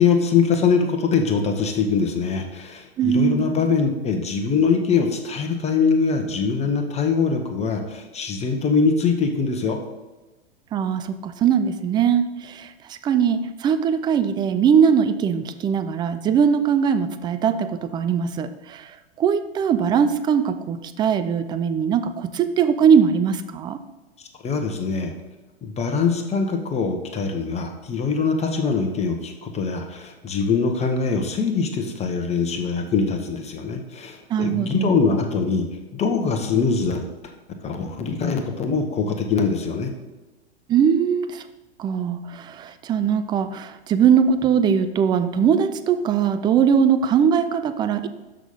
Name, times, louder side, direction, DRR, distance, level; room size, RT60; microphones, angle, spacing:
voice 1, 0.0-9.8 24.4-25.1 25.6-35.6 35.9-37.0 37.6-39.9, left 5 dB, 20° left, 5 dB, 1.1 m, -22 dB
voice 2, 3.0-3.5 10.7-18.9 19.2-23.8 34.3-34.9 40.7-41.4 41.8-48.1, right 7 dB, 15° right, 11 dB, 0.3 m, -21 dB
6.4 x 6.2 x 5.4 m, 1.1 s
figure-of-eight pair, 100°, 31 cm